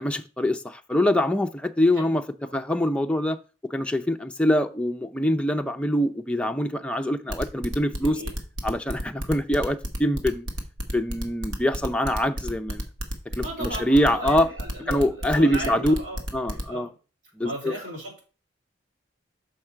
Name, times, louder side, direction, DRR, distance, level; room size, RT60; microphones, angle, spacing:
voice 1, 0.0-2.2 2.5-3.4 3.6-8.2 8.6-10.5 10.9-12.8 13.4-14.5 14.9-15.9 16.3-16.9 17.4-17.7, left 1 dB, 5° left, 0.4 m, -24 dB
sound 1, 7.3-16.6, equal, 80° right, 1.3 m, -31 dB
voice 2, 8.0-8.3 13.4-17.0 17.4-18.2, right 1 dB, 65° right, 3.5 m, -36 dB
6.5 x 4.9 x 4.4 m
head